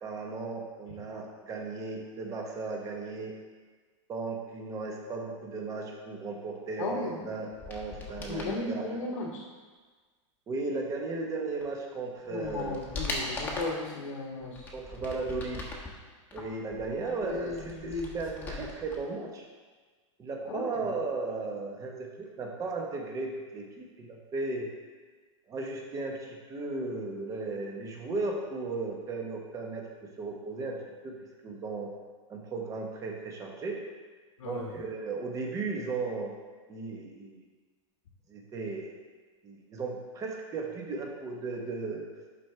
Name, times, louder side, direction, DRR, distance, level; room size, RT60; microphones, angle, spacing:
voice 1, 0.0-3.3 4.1-8.9 10.5-12.8 14.7-15.6 16.3-19.5 20.2-24.7 25.5-30.8 31.0-31.2 31.4-31.9 32.3-33.8 34.4-36.3 36.7-37.4 38.3-39.0 39.4-42.1, right 3 dB, 20° right, 0 dB, 1.1 m, -36 dB
voice 2, 6.8-7.3 8.2-9.5 12.3-14.7 17.0-18.1 18.4-18.6 20.4-20.9 34.4-34.8, left 3 dB, 90° left, -2 dB, 1.4 m, -36 dB
sound 1, 7.5-8.6 11.6-11.7 12.2-13.9 14.4-15.9 16.3-19.0 19.2-19.3, left 2 dB, 10° left, 1.1 m, -39 dB
11.5 x 4.6 x 3.3 m, 1.4 s
supercardioid pair, 150°, 16 cm